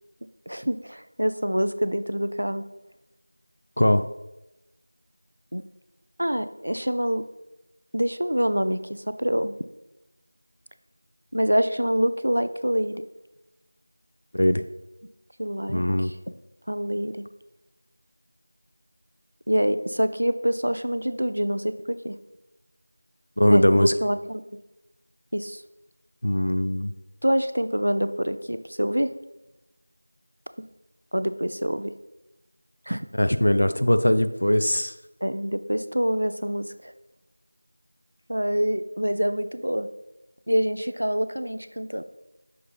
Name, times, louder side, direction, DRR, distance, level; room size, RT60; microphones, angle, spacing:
voice 1, 0.5-2.6 5.5-5.6 6.2-7.3 7.9-9.6 11.3-13.0 15.4-15.8 16.7-17.3 19.5-22.2 23.5-24.4 25.3-25.6 27.2-29.1 31.1-31.9 32.9-33.1 35.2-36.9 38.3-39.9 40.5-42.0, equal, 90° right, 11 dB, 0.4 m, -26 dB
voice 2, 15.7-16.1 23.4-23.9 26.2-26.9 33.1-34.9, left 1 dB, 55° left, 10 dB, 0.4 m, -20 dB
6.5 x 4.4 x 3.3 m, 0.95 s
figure-of-eight pair, 180°, 0 cm